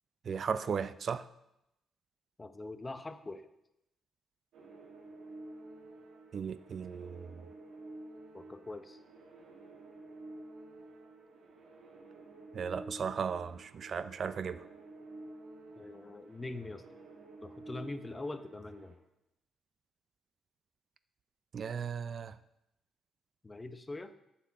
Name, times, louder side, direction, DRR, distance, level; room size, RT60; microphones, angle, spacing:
voice 1, 0.2-1.3 6.3-7.5 12.5-14.7 21.5-22.4, right 6 dB, 55° right, 14 dB, 0.4 m, -36 dB
voice 2, 2.4-3.5 8.3-9.0 15.8-16.8 17.4-19.0 23.4-24.1, left 2 dB, 25° left, 10 dB, 0.8 m, -43 dB
sound 1, 4.5-19.0, right 2 dB, 80° right, 1.8 m, -51 dB
8.0 x 6.1 x 7.6 m, 0.86 s
supercardioid pair, 65°, 0 cm